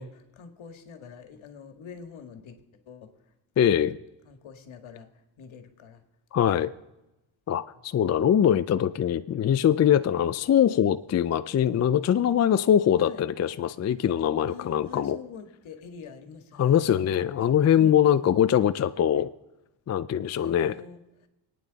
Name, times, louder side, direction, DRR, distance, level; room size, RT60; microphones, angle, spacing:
voice 1, 0.0-3.3 3.6-4.0 4.3-6.0 6.4-6.7 8.1-8.6 9.1-9.3 13.0-13.2 14.5-16.9 17.8-18.0 20.3-21.3, left 6 dB, 70° left, 6 dB, 1.8 m, -46 dB
voice 2, 3.6-4.0 6.3-6.7 7.5-15.2 16.6-19.3 19.9-20.7, left 9 dB, 35° left, 12 dB, 0.4 m, -22 dB
27.5 x 9.5 x 4.0 m, 0.98 s
cardioid pair, 130°, 49 cm